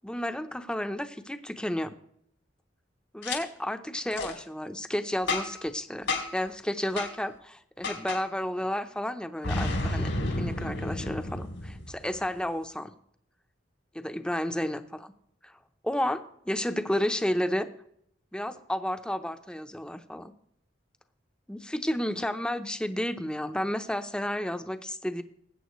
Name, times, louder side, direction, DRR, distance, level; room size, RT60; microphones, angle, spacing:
voice 1, 0.0-1.9 3.1-10.1 10.4-11.8 12.0-12.9 13.9-15.1 15.4-15.5 15.8-17.7 18.3-20.3 21.5-25.2, left 1 dB, 5° left, 9 dB, 0.7 m, -31 dB
Boom, 3.2-3.4 4.1-4.3 5.3-5.7 6.1-6.4 7.0-7.1 7.8-8.2 9.4-12.1, left 2 dB, 80° left, 3.1 m, -31 dB
20.0 x 8.8 x 3.1 m, 0.69 s
head